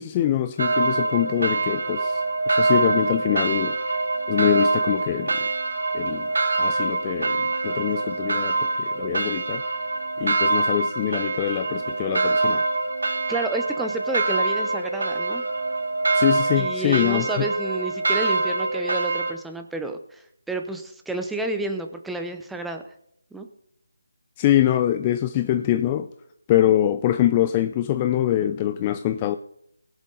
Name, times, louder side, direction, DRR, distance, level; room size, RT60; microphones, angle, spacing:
voice 1, 0.0-4.0 4.3-5.5 5.9-6.3 6.6-9.6 10.2-12.7 16.1-17.5 24.4-26.1 26.5-29.4, left 12 dB, 20° left, 0.4 m, -24 dB
sound 1, 0.6-19.3, right 3 dB, 65° right, 2.2 m, -24 dB
voice 2, 13.3-15.4 16.6-22.8 23.3-23.5, right 2 dB, 5° right, 0.8 m, -30 dB
20.5 x 7.3 x 4.0 m
figure-of-eight pair, 160°, 0 cm